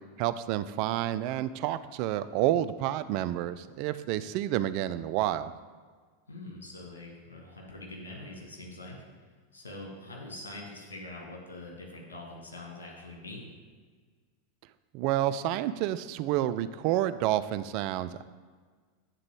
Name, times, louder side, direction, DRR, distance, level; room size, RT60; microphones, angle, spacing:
voice 1, 0.2-5.5 14.9-18.2, right 13 dB, 55° right, 13 dB, 0.3 m, -29 dB
voice 2, 6.3-9.0 9.5-13.5, left 2 dB, 85° left, 0 dB, 1.6 m, -44 dB
9.1 x 3.7 x 4.7 m, 1.5 s
hypercardioid pair, 90°, 0 cm